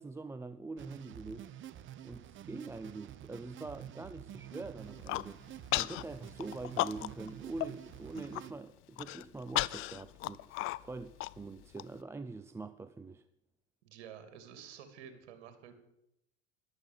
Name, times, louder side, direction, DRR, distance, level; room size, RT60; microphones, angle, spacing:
voice 1, 0.0-1.5 2.0-13.3, right 3 dB, 10° right, 11 dB, 0.5 m, -44 dB
sound 1, 0.8-8.5, right 11 dB, 35° right, 1.0 m, -49 dB
Human voice, 4.8-5.3 5.7-6.0 6.4-7.3 7.6-7.7 8.1-8.4 9.0-11.8, left 18 dB, 40° left, 0.5 m, -34 dB
voice 2, 13.8-15.7, right 8 dB, 65° right, 8 dB, 2.9 m, -50 dB
13.0 x 12.0 x 7.2 m, 0.83 s
hypercardioid pair, 85°, 34 cm